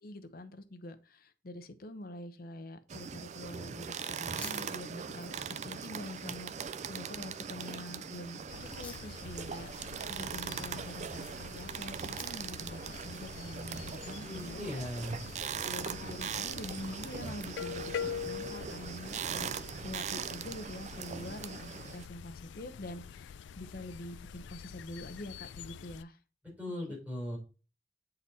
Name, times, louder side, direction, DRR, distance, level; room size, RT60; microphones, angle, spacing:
voice 1, 0.0-8.4 8.8-14.9 15.6-19.5 19.8-26.2, left 1 dB, 55° left, 10 dB, 0.8 m, -45 dB
sound 1, 2.9-22.1, right 7 dB, 40° right, 0.4 m, -40 dB
sound 2, 3.8-16.0, left 2 dB, 10° left, 1.3 m, -55 dB
Frogs and bells, 8.5-26.0, left 7 dB, 85° left, 0.3 m, -45 dB
voice 2, 14.2-15.2 26.6-27.4, left 1 dB, 10° right, -4 dB, 4.3 m, -38 dB
8.4 x 4.0 x 4.1 m, 0.34 s
head